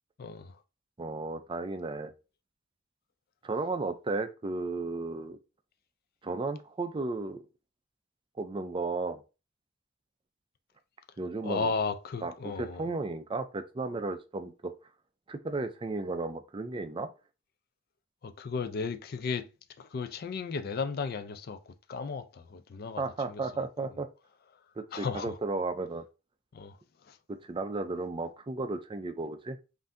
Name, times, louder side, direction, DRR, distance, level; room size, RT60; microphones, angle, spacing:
voice 1, 0.2-0.6 11.4-12.9 18.2-19.5 19.8-23.0 23.3-23.4 24.9-25.4 26.5-26.8 27.1-27.2, left 5 dB, 45° left, 0.4 m, -35 dB
voice 2, 1.0-2.1 3.4-5.4 6.2-7.4 8.4-9.2 11.2-11.7 12.2-12.3 12.6-14.7 15.3-17.1 23.0-24.1 24.8-26.0 27.3-29.6, right 3 dB, 25° right, 0.4 m, -34 dB
5.5 x 2.6 x 2.6 m
head